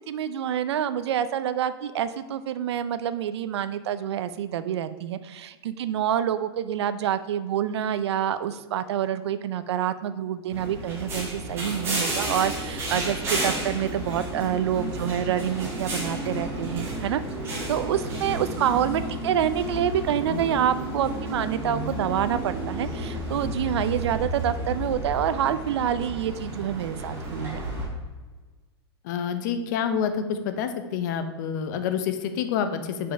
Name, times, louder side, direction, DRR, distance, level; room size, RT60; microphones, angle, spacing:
voice 1, 0.1-17.2 17.7-27.6, right 9 dB, 80° right, 13 dB, 0.5 m, -27 dB
sound 1, 10.5-27.9, right 1 dB, 15° right, 1.9 m, -32 dB
voice 2, 29.0-33.1, left 7 dB, 45° left, 9 dB, 0.7 m, -28 dB
5.4 x 5.4 x 5.4 m, 1.3 s
supercardioid pair, 165°, 14 cm